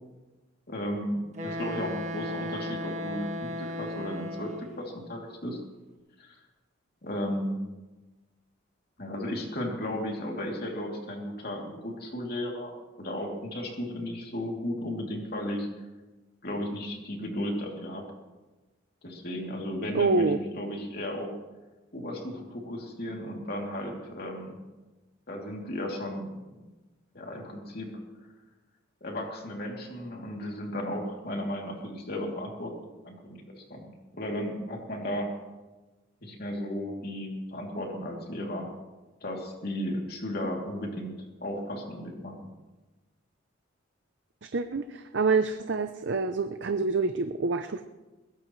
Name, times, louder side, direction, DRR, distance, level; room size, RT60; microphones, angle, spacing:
voice 1, 0.7-4.5 4.8-5.6 6.2-6.3 7.0-7.6 9.0-12.7 13.0-15.7 16.4-18.1 19.0-21.3 21.9-24.6 25.3-26.6 27.1-27.9 29.0-32.7 33.0-35.3 36.2-38.7 39.2-41.1 41.4-42.3, left 1 dB, 45° left, 0 dB, 2.9 m, -34 dB
Wind instrument woodwind instrument, 1.3-4.8, equal, 35° right, 1.6 m, -35 dB
voice 2, 19.9-20.4 44.5-47.8, right 4 dB, 60° right, 8 dB, 0.6 m, -26 dB
21.0 x 17.0 x 3.2 m, 1.2 s
head